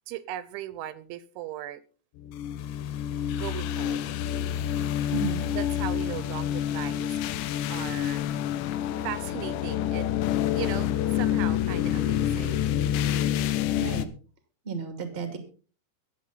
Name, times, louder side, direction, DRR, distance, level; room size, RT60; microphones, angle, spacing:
voice 1, 0.1-1.8 3.4-4.1 5.5-8.3 9.0-10.2 10.5-12.7, right 13 dB, 80° right, 3.0 m, -38 dB
sound 1, 2.2-14.1, left 11 dB, 80° left, 2.9 m, -28 dB
voice 2, 5.1-5.5 13.7-14.1 14.6-15.4, right 4 dB, 25° right, 1.4 m, -33 dB
23.5 x 8.1 x 4.1 m
omnidirectional pair, 5.6 m